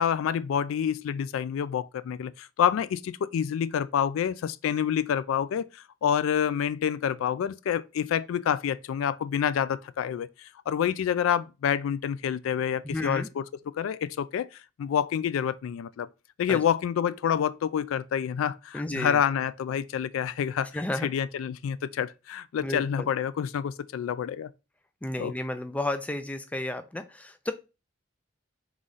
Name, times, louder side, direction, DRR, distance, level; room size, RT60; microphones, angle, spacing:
voice 1, 0.0-14.5 14.8-16.1 16.4-24.5 25.2-25.3, left 8 dB, 90° left, 0.3 m, -28 dB
voice 2, 12.8-13.3 16.5-16.6 18.7-19.2 20.7-21.1 22.6-23.1 25.0-27.5, left 1 dB, 5° left, 0.3 m, -32 dB
3.8 x 3.1 x 3.8 m
head